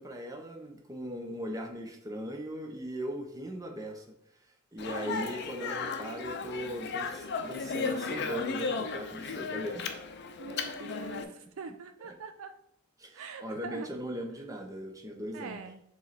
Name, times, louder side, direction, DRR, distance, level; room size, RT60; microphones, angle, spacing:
voice 1, 0.0-4.1 4.7-10.1 12.0-12.1 13.0-15.6, equal, 15° right, 2 dB, 0.9 m, -39 dB
Speech, 4.8-11.2, left 4 dB, 50° left, 0.6 m, -35 dB
voice 2, 4.9-5.2 10.4-12.5 13.1-13.9 15.3-15.8, right 4 dB, 65° right, 8 dB, 0.5 m, -43 dB
6.8 x 3.3 x 4.2 m, 0.76 s
head